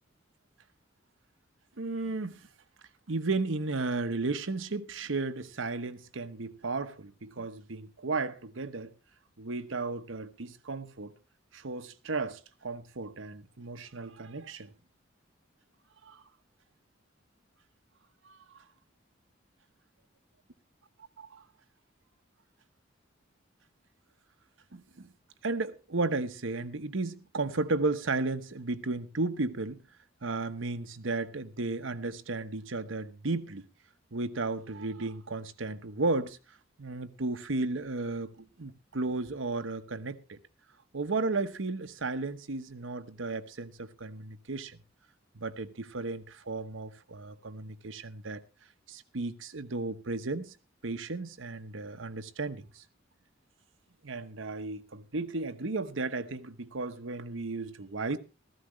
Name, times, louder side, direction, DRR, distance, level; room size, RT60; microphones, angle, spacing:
voice 1, 1.8-2.5 3.1-8.9 9.4-11.1 11.5-14.7 16.0-16.2 18.2-18.4 24.7-25.1 25.4-29.8 30.2-33.7 34.1-36.4 36.8-40.4 40.9-44.8 45.3-48.4 48.9-50.5 50.8-52.8 54.0-58.2, right 3 dB, 90° right, 1.0 m, -34 dB
15.5 x 14.0 x 3.1 m
head